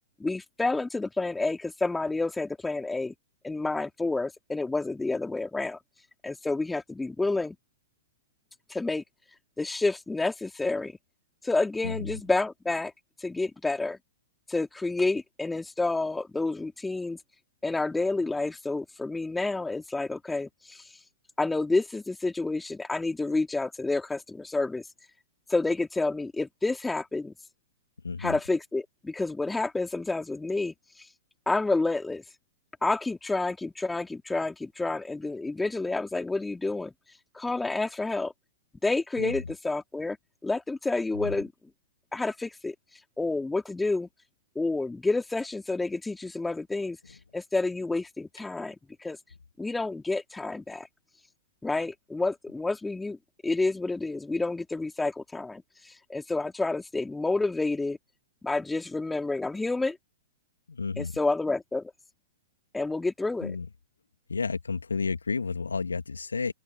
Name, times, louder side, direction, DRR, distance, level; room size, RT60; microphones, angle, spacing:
voice 1, 0.2-3.1 3.4-5.8 6.2-7.6 8.7-9.0 9.6-11.0 11.4-12.9 13.2-14.0 14.5-17.2 17.6-20.8 21.4-24.8 25.5-27.3 28.2-31.1 31.5-32.2 32.8-36.9 37.3-38.3 38.8-40.2 40.4-41.5 42.1-42.7 43.2-44.1 44.6-47.0 47.3-49.2 49.6-50.9 51.6-53.2 53.4-55.6 56.1-58.0 58.4-60.0 61.0-61.9 62.7-63.5, left 3 dB, 5° left, 3.9 m, -29 dB
voice 2, 28.0-28.4 39.2-39.4 41.1-41.3 60.7-61.1 63.4-63.7 64.3-66.5, left 4 dB, 75° left, 3.1 m, -31 dB
open air
figure-of-eight pair, 105°, 0 cm